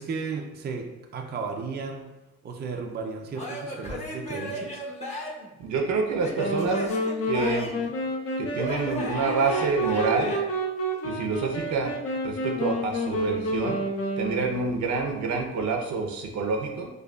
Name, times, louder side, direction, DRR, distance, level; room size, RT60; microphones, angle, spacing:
voice 1, 0.0-2.1 2.4-4.8, right 4 dB, 35° right, 3 dB, 0.4 m, -34 dB
Male speech man speaking / Yell / Laughter, 3.3-5.5 6.2-7.9 8.5-10.4, left 1 dB, 20° left, 0.8 m, -35 dB
voice 2, 5.6-6.8 7.3-7.7 8.4-10.3 11.0-11.9 12.2-13.8 14.2-16.9, right 4 dB, 70° right, 2 dB, 0.6 m, -27 dB
sound 1, 6.3-14.8, equal, 50° left, 0.7 m, -29 dB
4.9 x 2.3 x 2.3 m, 1.1 s
cardioid pair, 90°, 30 cm